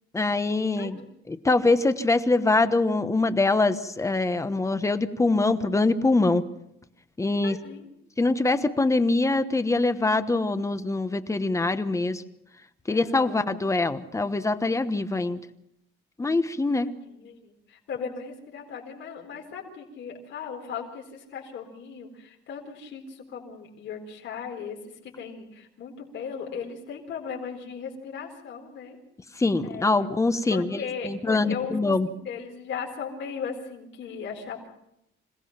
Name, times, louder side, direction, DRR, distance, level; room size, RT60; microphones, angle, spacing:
voice 1, 0.1-1.0 1.3-6.4 7.2-7.6 8.2-12.2 12.9-15.4 16.2-16.9 29.4-32.1, left 3 dB, 15° left, 11 dB, 1.1 m, -24 dB
voice 2, 0.8-1.2 7.4-7.9 12.9-13.6 16.8-24.8 25.0-29.0 29.6-30.1 30.5-34.7, left 6 dB, 65° left, 1 dB, 4.2 m, -37 dB
26.5 x 17.0 x 5.9 m, 0.79 s
cardioid pair, 135°, 20 cm